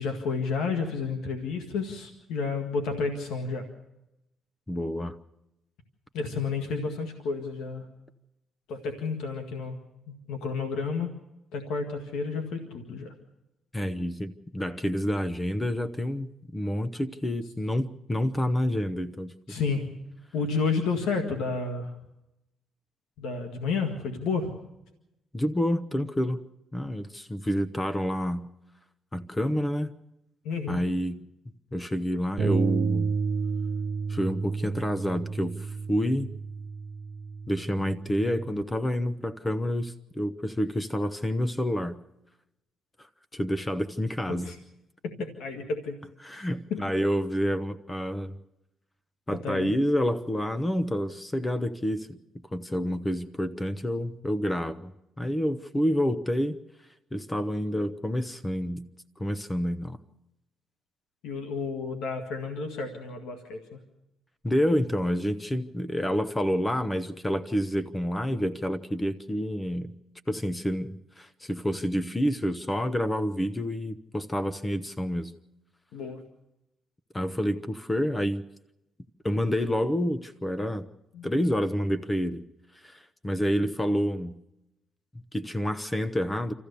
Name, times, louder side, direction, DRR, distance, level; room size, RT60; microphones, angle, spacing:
voice 1, 0.0-3.7 6.1-7.9 8.7-9.8 10.1-11.1 11.5-13.1 19.5-19.9 20.3-21.9 23.2-24.5 30.4-30.8 44.3-44.6 45.0-46.0 46.3-46.8 49.3-49.7 61.2-63.8 75.9-76.2 81.1-81.4, left 4 dB, 85° left, 5 dB, 1.9 m, -31 dB
voice 2, 4.7-5.1 13.7-19.6 25.3-26.5 26.7-28.5 29.1-29.9 30.7-33.1 34.1-36.3 37.5-42.0 43.3-44.5 46.2-48.4 49.3-52.2 52.5-54.9 55.2-56.6 57.1-58.9 59.2-60.0 64.4-69.9 70.3-75.3 77.1-78.4 79.2-80.9 81.2-82.4 82.8-84.4 85.1-86.5, equal, 15° left, 12 dB, 0.9 m, -28 dB
Bass guitar, 32.4-38.6, right 5 dB, 75° right, 1.0 m, -31 dB
27.0 x 14.5 x 6.9 m, 0.89 s
cardioid pair, 90°, 0 cm